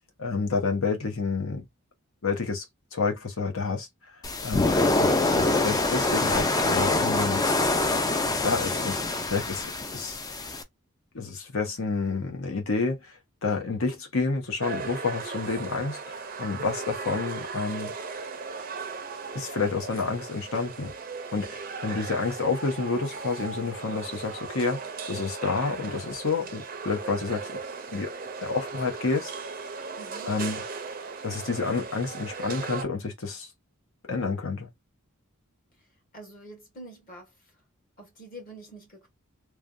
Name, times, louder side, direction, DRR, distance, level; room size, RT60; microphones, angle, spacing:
voice 1, 0.2-1.6 2.2-2.6 2.9-3.9 4.4-4.7 5.0-7.4 8.4-10.2 11.1-13.1 13.4-17.9 19.3-20.9 21.3-27.6 27.9-28.1 28.4-29.3 30.3-30.6 31.2-33.5 34.1-34.7, left 4 dB, 70° left, 0.9 m, -29 dB
sound 1, 4.2-10.6, left 2 dB, 15° left, 0.4 m, -25 dB
sound 2, 14.6-32.8, right 4 dB, 40° right, 0.5 m, -37 dB
voice 2, 30.0-30.3 35.8-35.9 36.1-37.5 38.0-39.1, right 1 dB, 40° left, 1.6 m, -46 dB
3.2 x 2.1 x 2.5 m
head